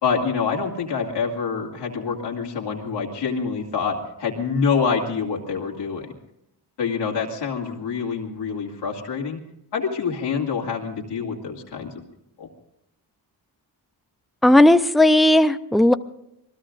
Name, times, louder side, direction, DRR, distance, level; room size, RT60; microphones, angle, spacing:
voice 1, 0.0-6.1 6.8-9.4 9.7-11.9 12.4-12.5, left 5 dB, 90° left, -1 dB, 2.3 m, -26 dB
voice 2, 14.4-15.9, left 1 dB, ahead, 11 dB, 0.5 m, -15 dB
26.5 x 19.5 x 2.5 m, 0.82 s
cardioid pair, 105°, 41 cm